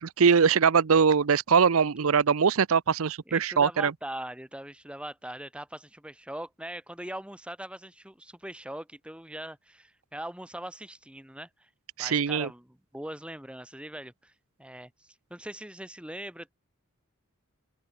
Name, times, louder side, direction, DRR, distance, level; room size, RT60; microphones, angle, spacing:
voice 1, 0.0-3.9 12.0-12.5, right 6 dB, 70° right, 0.6 m, -22 dB
voice 2, 3.3-11.7 12.0-14.3 14.6-16.5, right 1 dB, 5° right, 2.5 m, -41 dB
open air
head